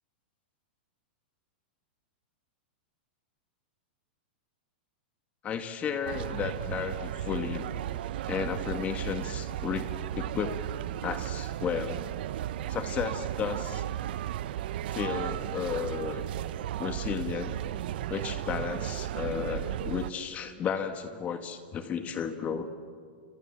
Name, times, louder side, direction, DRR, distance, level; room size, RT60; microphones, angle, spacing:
voice 1, 5.4-7.7 8.3-10.6 11.0-12.1 12.7-13.8 14.9-16.2 16.8-17.5 18.1-22.7, left 7 dB, 25° left, 8 dB, 1.8 m, -33 dB
sound 1, 6.0-20.1, right 12 dB, 65° right, 0.8 m, -35 dB
29.5 x 25.5 x 7.6 m, 2.1 s
hypercardioid pair, 140°, 6 cm